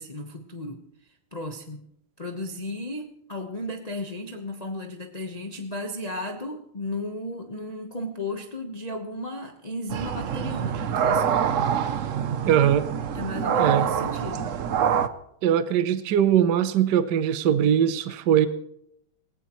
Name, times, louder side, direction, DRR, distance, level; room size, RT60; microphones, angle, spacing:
voice 1, 0.0-1.8 2.2-11.4 13.1-14.6, left 1 dB, 25° left, 2 dB, 0.8 m, -35 dB
sound 1, 9.9-15.1, right 8 dB, 90° right, 0.6 m, -25 dB
voice 2, 12.5-12.8 13.6-13.9 15.4-18.5, right 9 dB, 60° right, 11 dB, 1.2 m, -21 dB
20.0 x 19.0 x 3.1 m, 0.75 s
omnidirectional pair, 2.3 m